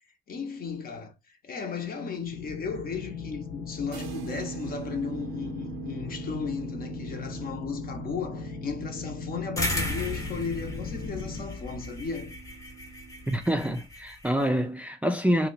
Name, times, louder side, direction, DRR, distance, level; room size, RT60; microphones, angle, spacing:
voice 1, 0.3-1.1 1.4-12.4, left 5 dB, 50° left, 0.8 m, -35 dB
sound 1, 2.2-11.5, left 4 dB, 85° left, 0.6 m, -39 dB
sound 2, 3.9-13.5, right 11 dB, 80° right, 0.4 m, -44 dB
sound 3, 9.6-14.5, left 1 dB, 15° left, 0.8 m, -35 dB
voice 2, 13.3-15.5, equal, 5° right, 0.3 m, -26 dB
2.8 x 2.1 x 3.9 m
cardioid pair, 90°, 20 cm